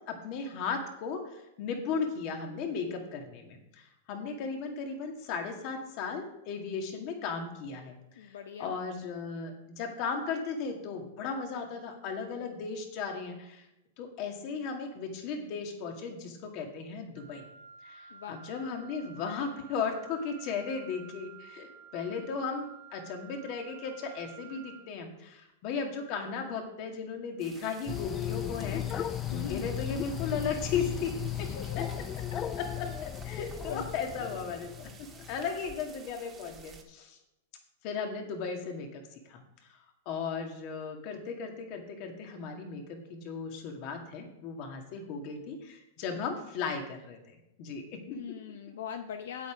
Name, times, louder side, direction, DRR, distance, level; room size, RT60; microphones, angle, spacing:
voice 1, 0.1-8.3 8.6-13.7 14.0-17.4 17.8-31.5 31.8-31.9 32.6-34.9 35.3-37.2 37.8-39.0 39.3-39.4 40.1-48.4, left 5 dB, 45° left, 3 dB, 2.1 m, -36 dB
voice 2, 8.2-8.7 18.1-18.4 29.3-29.7 31.3-31.8 33.7-33.9 48.1-49.5, left 8 dB, 80° left, 7 dB, 0.7 m, -41 dB
Wind instrument woodwind instrument, 17.2-24.9, right 9 dB, 50° right, 2.3 m, -52 dB
sound 1, 27.4-36.8, right 5 dB, 20° right, 1.5 m, -52 dB
sound 2, 27.9-35.5, left 10 dB, 30° left, 0.4 m, -36 dB
8.3 x 8.2 x 5.0 m, 0.89 s
hypercardioid pair, 130°, 0 cm